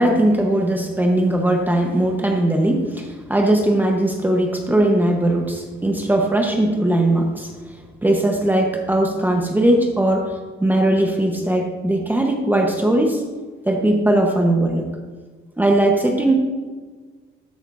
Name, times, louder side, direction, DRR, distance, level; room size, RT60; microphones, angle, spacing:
voice 1, 0.0-7.5 8.0-13.2 13.6-14.9 15.6-16.3, right 1 dB, 10° right, 1 dB, 0.9 m, -19 dB
12.5 x 8.8 x 2.5 m, 1.4 s
cardioid pair, 160°, 21 cm